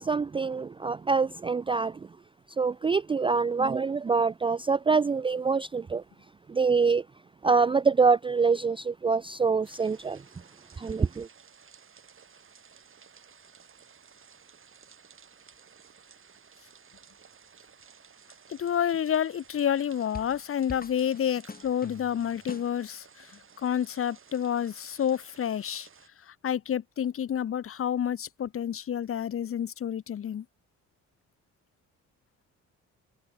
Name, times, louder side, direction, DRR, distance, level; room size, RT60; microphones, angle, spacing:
voice 1, 0.0-2.1 2.6-6.0 6.5-7.1 7.4-10.2 10.8-11.3, right 4 dB, 20° right, 0.4 m, -25 dB
sound 1, 9.6-26.1, right 6 dB, 45° right, 7.4 m, -55 dB
voice 2, 18.5-25.9 26.3-30.4, left 9 dB, 45° left, 1.0 m, -29 dB
sound 2, 20.1-20.4 20.7-22.8, left 4 dB, 30° left, 6.2 m, -44 dB
cardioid pair, 90°, 30 cm